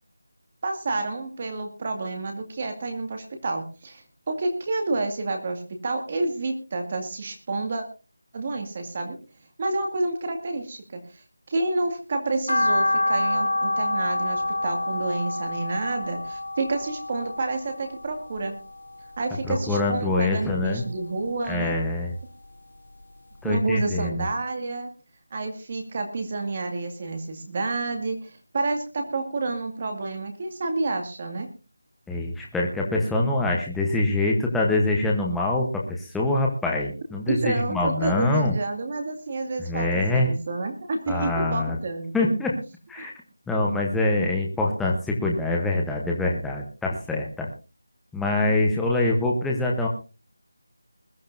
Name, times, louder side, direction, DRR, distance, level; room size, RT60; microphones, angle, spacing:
voice 1, 0.6-7.8 8.3-9.2 9.6-18.6 19.2-21.7 23.4-24.9 25.3-31.5 37.3-42.4, right 3 dB, 25° right, 4 dB, 2.1 m, -29 dB
sound 1, 12.5-18.8 19.2-20.3 20.7-22.1 22.4-22.5 23.0-23.1 23.4-23.5, left 2 dB, 75° left, 0.9 m, -27 dB
voice 2, 19.5-20.8 21.5-22.1 23.4-24.2 32.1-38.5 39.6-40.3 41.1-41.8 42.1-42.5 42.9-43.1 43.5-47.5 48.1-49.9, left 2 dB, ahead, -3 dB, 0.9 m, -24 dB
21.5 x 12.5 x 2.6 m, 0.31 s
figure-of-eight pair, 175°, 0 cm